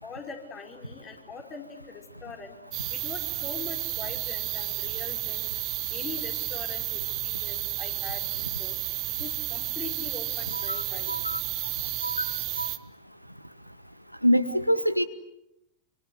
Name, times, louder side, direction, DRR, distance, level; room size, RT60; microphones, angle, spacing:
voice 1, 0.0-2.6 2.9-5.6 5.9-8.7 9.2-11.2, left 5 dB, 25° left, 3 dB, 5.0 m, -42 dB
sound 1, 2.7-12.8, right 18 dB, 40° right, 1.3 m, -32 dB
voice 2, 10.5-10.8 11.1-11.4 12.0-12.2 12.6-12.7 14.2-15.0, equal, 90° right, 11 dB, 1.3 m, -25 dB
27.0 x 27.0 x 8.0 m, 0.88 s
figure-of-eight pair, 90°, 0 cm